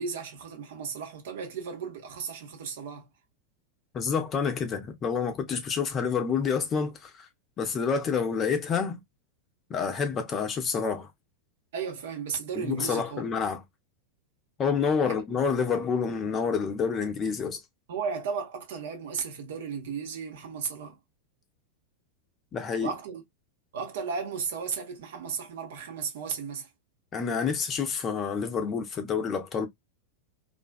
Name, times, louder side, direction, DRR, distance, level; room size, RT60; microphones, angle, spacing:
voice 1, 0.0-3.1 11.7-13.2 15.0-15.1 17.9-21.0 22.8-23.2 23.7-26.7, right 6 dB, 55° right, 0.8 m, -35 dB
voice 2, 3.9-7.3 7.6-9.0 9.7-11.1 12.5-13.6 14.6-17.6 22.5-22.9 27.1-29.7, left 6 dB, 25° left, 0.6 m, -28 dB
2.5 x 2.3 x 2.3 m
figure-of-eight pair, 90°, 0 cm